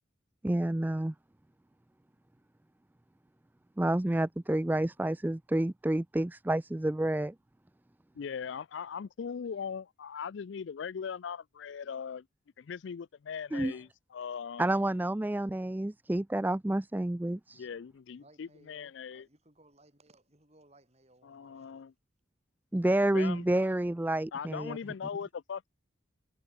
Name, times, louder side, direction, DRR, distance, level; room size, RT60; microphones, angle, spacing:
voice 1, 0.4-1.1 3.8-7.3 13.5-13.7 14.6-17.7 22.7-24.8, right 1 dB, 10° right, 0.3 m, -29 dB
voice 2, 4.2-4.8 8.9-9.1 18.2-21.9 23.3-23.9, right 2 dB, 35° right, 4.9 m, -63 dB
voice 3, 8.1-12.3 12.6-14.7 17.5-19.3 21.2-21.9 23.1-23.4 24.3-25.7, left 6 dB, 70° left, 0.4 m, -39 dB
head